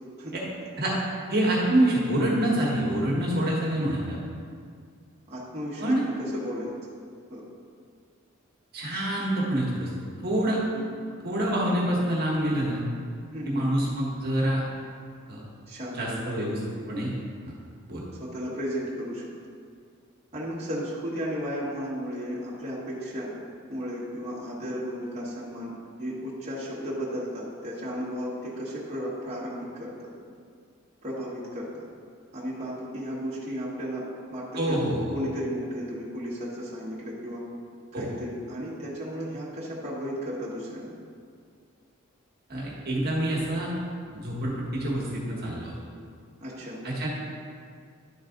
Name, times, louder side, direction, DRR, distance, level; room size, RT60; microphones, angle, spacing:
voice 1, 1.3-4.2 5.8-6.0 8.7-9.9 10.2-10.6 11.2-12.9 13.4-14.6 15.3-15.4 15.9-16.6 16.9-17.1 17.4-17.5 17.9-18.0 34.6-35.0 37.9-38.1 42.5-43.7 44.1-45.7 46.8-47.1, right 1 dB, 50° right, -5 dB, 1.4 m, -26 dB
voice 2, 5.3-6.7 7.3-7.4 10.7-10.9 13.3-13.7 15.7-16.2 18.2-19.3 20.3-23.4 23.7-25.7 26.0-30.1 31.0-31.8 32.3-34.0 34.3-34.8 35.1-37.4 37.9-40.9 46.4-46.8, equal, 30° right, -7 dB, 1.4 m, -34 dB
11.0 x 4.1 x 3.8 m, 2.1 s
head